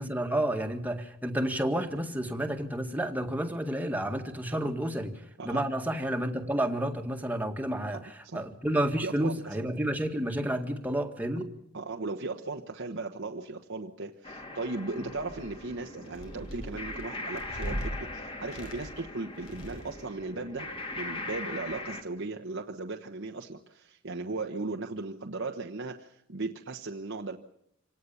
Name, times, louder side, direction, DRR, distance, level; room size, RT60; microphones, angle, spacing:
voice 1, 0.0-5.1 5.4-8.0 8.3-11.5, right 1 dB, 10° right, 4 dB, 1.9 m, -30 dB
voice 2, 7.9-8.4 9.0-9.3 11.7-20.7 21.0-27.4, right 3 dB, 60° right, 3 dB, 1.2 m, -37 dB
sound 1, 14.2-22.0, left 2 dB, 25° left, 2.5 m, -41 dB
sound 2, 15.0-15.6 16.0-18.0 18.4-19.1 19.4-20.0, equal, 65° left, 5.1 m, -39 dB
26.5 x 18.0 x 7.1 m, 0.78 s
head